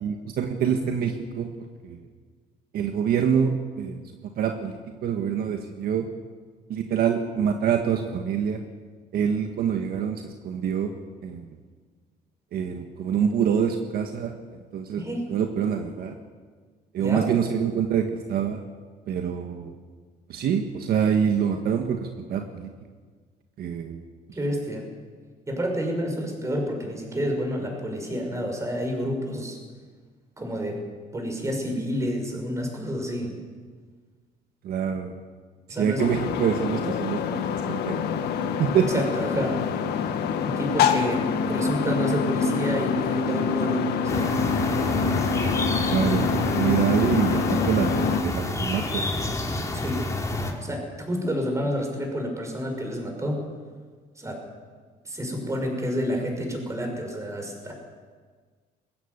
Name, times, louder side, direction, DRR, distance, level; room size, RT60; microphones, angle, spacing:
voice 1, 0.0-1.5 1.8-2.0 2.7-4.0 4.4-6.1 6.7-8.6 9.1-10.9 11.2-11.5 12.5-14.3 14.7-15.0 15.3-16.2 16.9-18.6 19.1-19.7 20.3-22.7 23.6-24.0 34.6-35.1 35.8-38.0 38.6-38.9 45.9-49.1, right 7 dB, 65° right, 4 dB, 1.6 m, -25 dB
voice 2, 15.0-15.3 17.0-17.3 24.3-24.9 25.5-29.6 30.4-30.8 31.1-33.3 35.7-36.0 38.9-39.6 40.4-44.4 49.7-50.1 50.6-53.4 54.2-54.4 55.0-57.7, equal, 15° right, 2 dB, 6.0 m, -29 dB
sound 1, 36.0-48.2, left 6 dB, 75° left, 1.6 m, -26 dB
sound 2, 44.1-50.5, left 2 dB, 20° left, 3.0 m, -28 dB
21.0 x 16.0 x 8.1 m, 1.5 s
cardioid pair, 110°, 17 cm